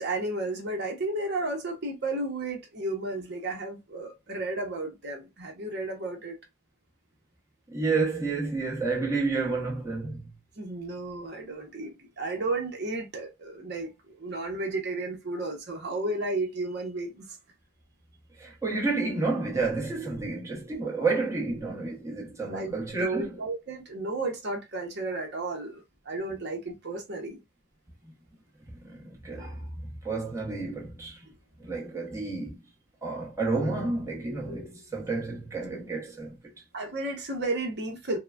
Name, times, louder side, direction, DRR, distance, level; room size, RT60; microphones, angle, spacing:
voice 1, 0.0-6.4 10.6-17.3 22.5-22.7 23.0-27.4 36.7-38.2, right 2 dB, 55° right, 0.8 m, -33 dB
voice 2, 7.7-10.3 18.4-23.4 28.8-29.7 30.0-31.2 31.6-32.6 33.0-36.4, right 3 dB, 15° right, 0.9 m, -30 dB
3.7 x 2.1 x 2.3 m
head